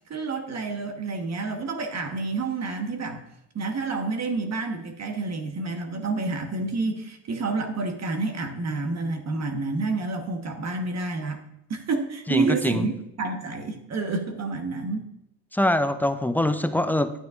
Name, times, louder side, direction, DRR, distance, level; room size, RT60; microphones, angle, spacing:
voice 1, 0.1-3.2 3.5-11.4 11.7-12.9 13.2-15.1, right 3 dB, 35° right, 4 dB, 1.3 m, -29 dB
voice 2, 12.3-12.9 15.5-17.1, left 1 dB, 5° left, 10 dB, 0.4 m, -23 dB
9.4 x 9.2 x 2.5 m, 0.85 s
supercardioid pair, 80°, 43 cm